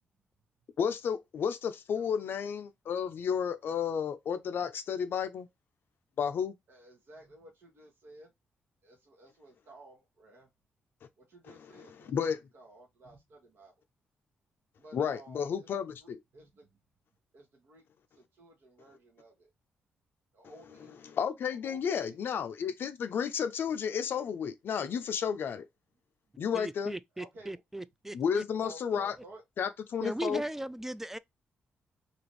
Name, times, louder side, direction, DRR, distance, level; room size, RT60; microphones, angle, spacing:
voice 1, 0.8-5.5 6.2-6.5 11.7-12.4 14.9-16.2 21.0-25.7 26.4-26.9 28.1-29.1 29.6-30.4, left 7 dB, 65° left, 0.4 m, -32 dB
voice 2, 6.7-8.3 8.8-10.5 11.2-13.7 14.8-16.8 17.3-17.8 18.1-19.5 20.3-22.2 27.1-27.6 28.5-29.4, right 1 dB, 65° right, 1.2 m, -55 dB
voice 3, 26.5-28.7 30.0-31.2, right 1 dB, 10° right, 0.3 m, -38 dB
2.9 x 2.5 x 3.0 m
supercardioid pair, 55°, 4 cm